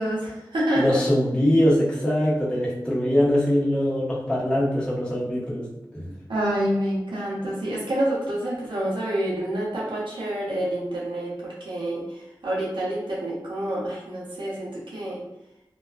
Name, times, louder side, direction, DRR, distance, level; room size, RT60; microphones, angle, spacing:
voice 1, 0.0-1.0 6.3-12.2 12.4-15.2, right 1 dB, 90° right, -6 dB, 0.7 m, -27 dB
voice 2, 0.7-6.1, equal, 10° left, -8 dB, 0.9 m, -22 dB
2.4 x 2.2 x 2.2 m, 0.90 s
cardioid pair, 40°, 8 cm